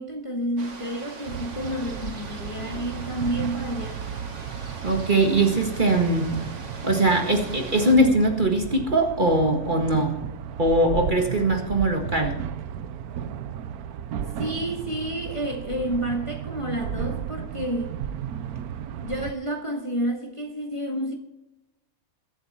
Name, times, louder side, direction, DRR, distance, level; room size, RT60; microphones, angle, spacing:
voice 1, 0.0-4.0 14.4-17.9 18.9-21.2, equal, 20° left, 1.8 m, -30 dB
sound 1, 0.6-8.0, right 3 dB, 55° right, 2.0 m, -41 dB
sound 2, 1.3-19.3, right 9 dB, 90° right, 1.2 m, -34 dB
voice 2, 4.8-6.3 6.8-10.2 10.6-12.4, right 1 dB, 35° right, 1.8 m, -21 dB
22.0 x 8.0 x 4.4 m
omnidirectional pair, 1.5 m